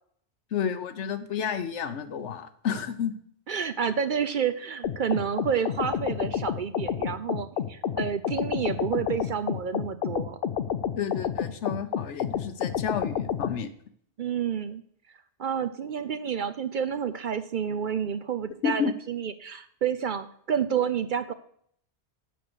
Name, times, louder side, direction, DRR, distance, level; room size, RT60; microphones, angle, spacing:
voice 1, 0.5-3.1 11.0-13.7 18.6-18.9, left 7 dB, 90° left, 10 dB, 1.2 m, -31 dB
voice 2, 3.5-10.4 14.2-14.8 15.4-21.3, right 7 dB, 55° right, 12 dB, 0.6 m, -29 dB
sound 1, 4.8-13.6, left 8 dB, 60° left, 0.8 m, -29 dB
7.9 x 6.5 x 6.2 m, 0.64 s
omnidirectional pair, 1.2 m